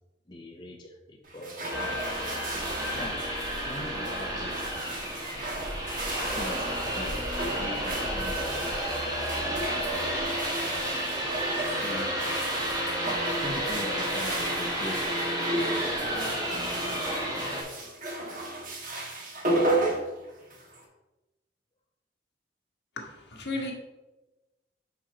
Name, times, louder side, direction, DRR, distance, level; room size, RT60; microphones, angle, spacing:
voice 1, 0.3-2.5 2.9-3.2 3.7-5.0 6.3-7.2 7.6-8.8 9.3-10.2 10.7-11.0 11.8-12.1 13.1-15.1 15.5-17.2 23.6-23.7, left 1 dB, 25° left, 1 dB, 0.6 m, -42 dB
sound 1, 1.2-20.8, right 2 dB, 50° right, 1.4 m, -35 dB
sound 2, 1.7-17.6, equal, 20° right, 1.4 m, -31 dB
voice 2, 23.0-23.7, left 2 dB, 70° left, 0 dB, 1.5 m, -34 dB
5.7 x 5.5 x 4.9 m, 1.1 s
head